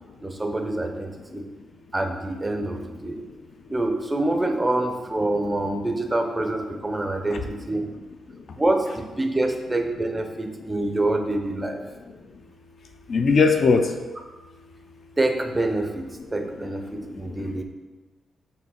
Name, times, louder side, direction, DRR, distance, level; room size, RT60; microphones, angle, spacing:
voice 1, 0.2-1.5 1.9-3.2 3.7-7.9 8.6-11.8 15.2-17.6, right 2 dB, 10° right, 5 dB, 0.6 m, -26 dB
voice 2, 13.1-13.9 16.2-16.5 16.9-17.6, left 4 dB, 45° left, 6 dB, 0.6 m, -22 dB
7.1 x 3.3 x 6.2 m, 1.2 s
wide cardioid pair, 165°, 0 cm